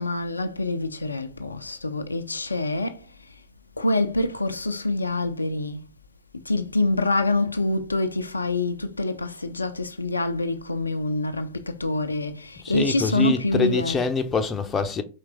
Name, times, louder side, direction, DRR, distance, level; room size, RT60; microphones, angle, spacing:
voice 1, 0.0-3.0 3.8-5.9 6.4-14.0, left 2 dB, 80° left, 0.4 m, -26 dB
voice 2, 12.6-15.0, left 4 dB, 20° left, 0.6 m, -25 dB
4.5 x 3.2 x 3.4 m
figure-of-eight pair, 90°, 0 cm